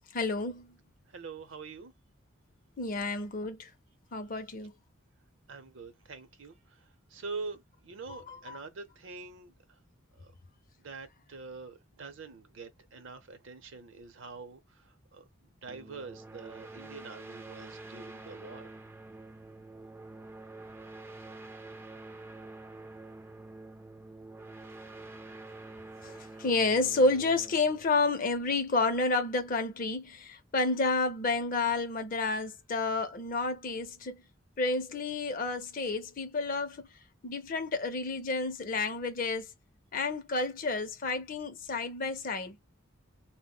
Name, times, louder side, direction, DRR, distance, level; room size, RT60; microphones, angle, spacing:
voice 1, 0.1-0.7 2.8-3.7 4.1-4.7 8.1-8.6 26.0-34.2 34.6-36.9 37.2-39.5 39.9-42.6, left 3 dB, 40° left, 0.5 m, -30 dB
voice 2, 1.1-1.9 5.5-9.8 10.1-10.3 10.8-18.8, right 4 dB, 65° right, 0.6 m, -45 dB
sound 1, 15.7-29.0, right 2 dB, 10° right, 0.3 m, -47 dB
2.1 x 2.0 x 3.6 m
head